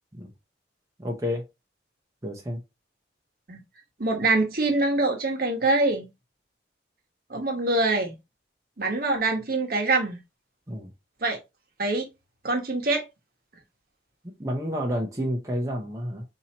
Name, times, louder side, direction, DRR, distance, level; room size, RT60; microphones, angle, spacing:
voice 1, 1.0-1.4 2.2-2.6 10.7-10.9 14.2-16.2, equal, 15° right, 0.7 m, -30 dB
voice 2, 4.0-6.1 7.3-8.1 8.8-10.2 11.2-11.4 11.8-12.1 12.4-13.0, right 2 dB, 55° right, 1.1 m, -24 dB
4.3 x 2.7 x 2.9 m
head